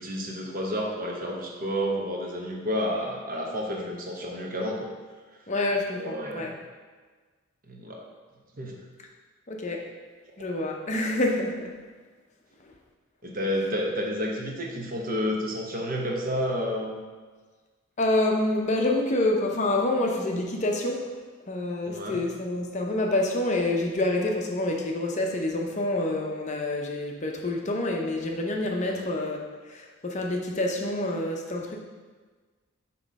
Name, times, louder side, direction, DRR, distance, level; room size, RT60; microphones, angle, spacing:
voice 1, 0.0-4.9 5.9-6.6 7.7-8.0 8.6-8.8 13.2-17.0 21.9-22.3 28.8-29.0, equal, 40° right, 0 dB, 0.9 m, -30 dB
voice 2, 5.5-6.5 9.5-9.9 10.4-11.6 18.0-21.1 21.5-29.4 29.7-31.8, left 2 dB, 35° left, 1 dB, 0.6 m, -27 dB
7.5 x 3.0 x 5.3 m, 1.4 s
head